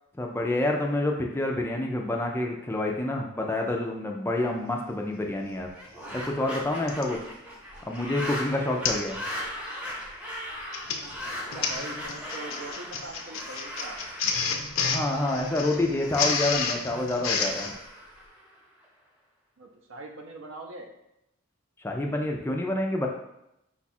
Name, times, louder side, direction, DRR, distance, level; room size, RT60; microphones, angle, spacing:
voice 1, 0.2-5.7 6.1-7.2 7.9-9.2 14.9-17.7 21.8-23.1, left 1 dB, 10° left, 1 dB, 0.3 m, -28 dB
Printer, 5.7-5.8 6.9-7.2 7.7-8.0 8.2-8.3 8.8-9.1 9.4-9.7 10.5-17.7, left 5 dB, 75° left, 0.5 m, -30 dB
sound 1, 5.7-18.8, equal, 5° right, 0.7 m, -39 dB
voice 2, 11.3-14.0 19.6-20.9, right 2 dB, 65° right, 3 dB, 0.6 m, -42 dB
4.6 x 2.3 x 4.1 m, 0.84 s
head